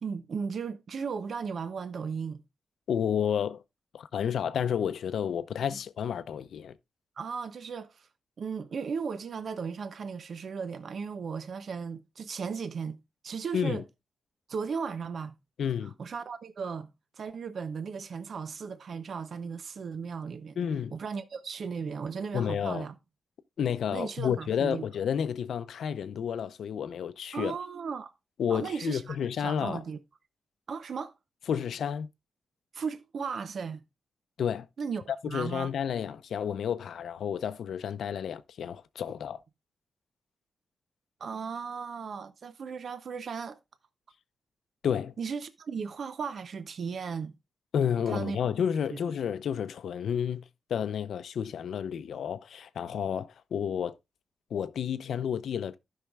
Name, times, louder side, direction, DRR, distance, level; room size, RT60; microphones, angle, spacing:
voice 1, 0.0-2.4 7.2-8.1 8.4-13.0 13.2-13.8 14.5-15.3 16.0-16.9 17.1-20.6 20.9-22.9 23.9-24.9 27.3-28.1 28.5-30.0 30.7-31.1 32.7-33.8 34.8-35.7 41.2-43.6 45.2-47.3 48.1-48.4 48.9-49.0, right 5 dB, 60° right, 0.6 m, -36 dB
voice 2, 2.9-3.6 3.9-6.7 13.5-13.8 15.6-15.9 20.6-20.9 22.3-22.9 23.6-27.5 28.4-29.8 31.5-32.1 34.4-34.7 35.2-39.4 44.8-45.1 47.7-54.0 54.5-55.8, left 8 dB, 85° left, 0.6 m, -31 dB
15.5 x 5.6 x 2.4 m
wide cardioid pair, 115°, 0 cm